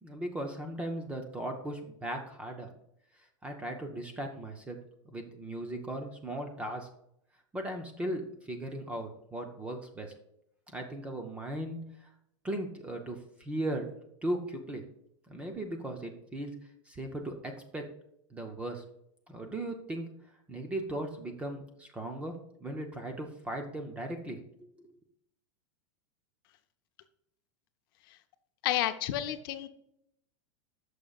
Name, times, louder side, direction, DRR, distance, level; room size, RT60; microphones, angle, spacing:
voice 1, 0.0-2.7 3.4-4.8 5.1-6.9 7.5-10.1 10.7-12.1 12.4-13.9 14.2-14.8 15.3-16.6 16.9-17.9 18.3-18.8 19.3-20.1 20.5-24.7, right 1 dB, 5° right, 4 dB, 0.5 m, -37 dB
voice 2, 28.6-29.7, left 13 dB, 45° left, 9 dB, 0.5 m, -30 dB
13.5 x 6.3 x 2.3 m, 0.75 s
supercardioid pair, 175°, 17 cm